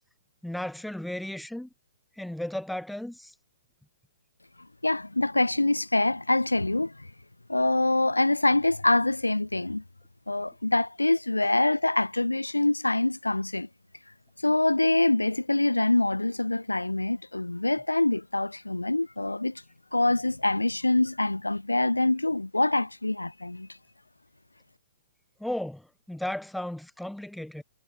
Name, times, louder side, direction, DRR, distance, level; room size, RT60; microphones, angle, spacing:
voice 1, 0.4-1.7 2.2-3.3 25.4-27.6, left 1 dB, ahead, 1.9 m, -35 dB
voice 2, 4.8-7.1 7.5-9.8 10.3-13.7 14.4-19.6 19.9-23.7, left 2 dB, 85° left, 0.4 m, -25 dB
figure-of-eight pair, 120°, 0 cm